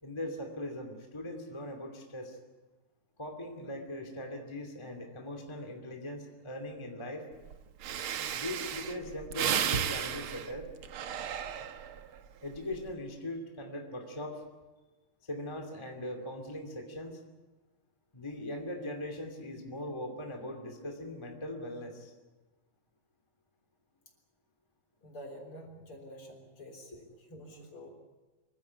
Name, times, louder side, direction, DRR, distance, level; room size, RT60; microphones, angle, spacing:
voice 1, 0.0-2.4 3.2-7.3 8.3-10.7 12.4-14.4 15.2-17.2 18.1-22.1, left 1 dB, 10° left, 2 dB, 2.1 m, -40 dB
Breathing, 7.5-7.6 7.8-12.1 12.5-12.9, right 9 dB, 75° right, 1.2 m, -34 dB
voice 2, 25.0-27.9, equal, 40° left, 3 dB, 4.3 m, -48 dB
25.5 x 15.5 x 9.6 m, 1.2 s
omnidirectional pair, 3.8 m